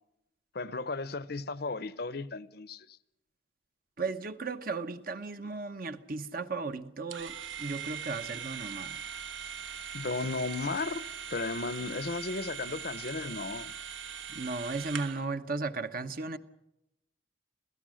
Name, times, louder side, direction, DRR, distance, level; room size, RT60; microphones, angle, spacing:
voice 1, 0.5-3.0 9.9-13.7, left 3 dB, 50° left, 0.8 m, -35 dB
voice 2, 4.0-9.1 14.3-16.4, right 3 dB, 45° right, 1.0 m, -35 dB
sound 1, 7.1-15.3, right 8 dB, 75° right, 1.4 m, -41 dB
26.5 x 17.0 x 6.4 m
head